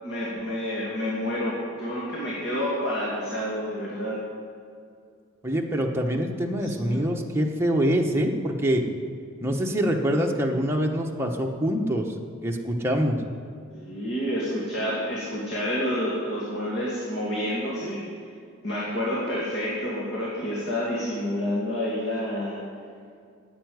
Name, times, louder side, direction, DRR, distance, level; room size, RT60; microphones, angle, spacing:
voice 1, 0.0-4.2 6.5-7.0 13.7-18.0 18.6-22.6, equal, 55° left, -6 dB, 2.4 m, -29 dB
voice 2, 5.4-8.8 9.4-12.1 12.4-13.2, equal, 10° right, 0 dB, 1.0 m, -25 dB
9.7 x 8.3 x 9.4 m, 2.3 s
head